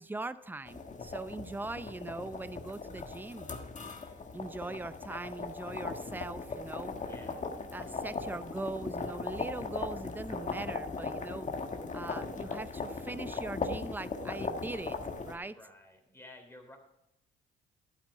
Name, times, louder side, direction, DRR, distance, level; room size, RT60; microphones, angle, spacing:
voice 1, 0.0-3.5 4.3-7.0 7.7-11.5 11.9-15.0 15.2-15.6, right 2 dB, 10° right, 14 dB, 0.6 m, -41 dB
sound 1, 0.7-15.4, left 4 dB, 40° left, 1.6 m, -38 dB
voice 2, 7.0-7.4 7.7-7.9 15.5-16.8, left 2 dB, 10° left, 4 dB, 3.2 m, -53 dB
11.5 x 9.4 x 5.0 m, 0.84 s
cardioid pair, 90°, 20 cm